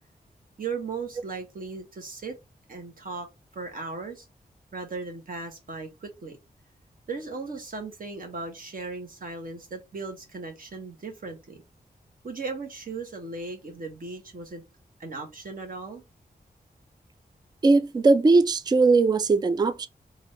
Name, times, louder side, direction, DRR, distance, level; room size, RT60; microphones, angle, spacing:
voice 1, 0.6-2.4 2.7-3.3 3.5-4.2 4.7-6.4 7.1-11.6 12.2-14.6 15.0-16.0, right 4 dB, 60° right, 1.3 m, -37 dB
voice 2, 17.6-19.9, right 3 dB, 25° right, 0.4 m, -19 dB
3.9 x 2.6 x 3.1 m
wide cardioid pair, 80°, 16 cm